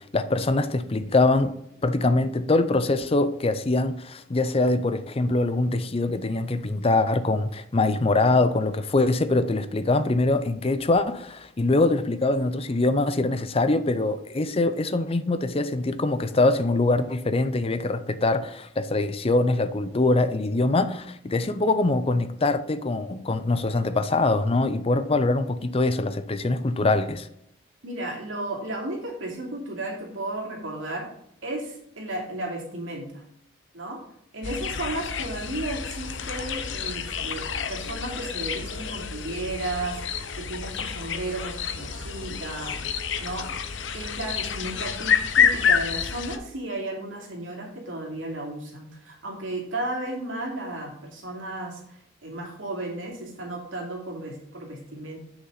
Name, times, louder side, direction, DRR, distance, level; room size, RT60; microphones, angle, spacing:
voice 1, 0.0-1.5 1.8-27.3, left 2 dB, 30° left, 0.5 m, -23 dB
voice 2, 27.8-31.1 31.4-33.2 33.7-34.0 34.3-40.0 40.4-42.8 43.2-43.5 43.9-55.2, right 2 dB, 80° right, 2.7 m, -34 dB
sound 1, 34.4-46.4, left 7 dB, 65° left, 0.8 m, -28 dB
8.1 x 6.5 x 4.0 m
head